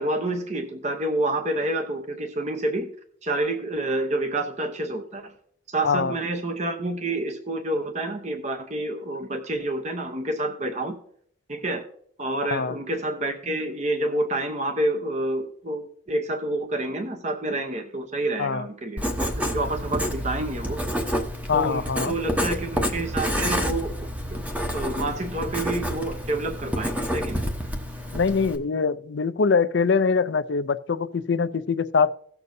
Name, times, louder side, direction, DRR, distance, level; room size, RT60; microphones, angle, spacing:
voice 1, 0.0-2.9 3.2-5.3 5.7-11.0 11.5-11.8 12.2-19.3 19.5-21.0 21.5-23.9 24.3-24.4 24.7-27.4, right 1 dB, 35° right, 0.8 m, -28 dB
voice 2, 12.4-12.7 18.4-18.6 21.5-22.1 28.1-32.1, left 5 dB, 60° left, 0.4 m, -23 dB
Writing, 19.0-28.6, equal, 5° right, 0.9 m, -29 dB
17.0 x 6.8 x 2.7 m
head